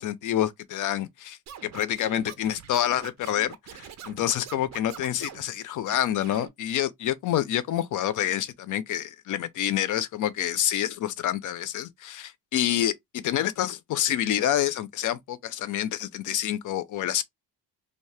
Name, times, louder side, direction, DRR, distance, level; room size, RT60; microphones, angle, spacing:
voice 1, 0.0-17.2, left 11 dB, 50° left, 0.5 m, -28 dB
Scratching (performance technique), 1.5-5.5 5.8-6.5, right 9 dB, 45° right, 0.5 m, -44 dB
2.7 x 2.0 x 3.1 m
cardioid pair, 130°, 41 cm